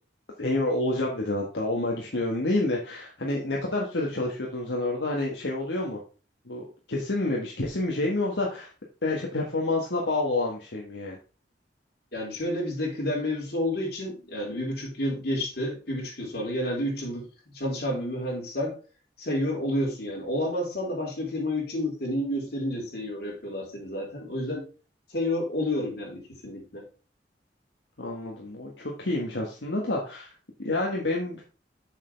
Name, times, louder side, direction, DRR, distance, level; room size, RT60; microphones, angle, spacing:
voice 1, 0.4-6.0 6.4-8.7 9.0-11.2 28.0-30.3 30.6-31.4, left 2 dB, 85° left, -1 dB, 1.5 m, -28 dB
voice 2, 12.1-18.8 19.2-24.6 25.1-26.8, left 1 dB, 65° left, -2 dB, 4.2 m, -30 dB
7.2 x 6.6 x 3.4 m, 0.34 s
head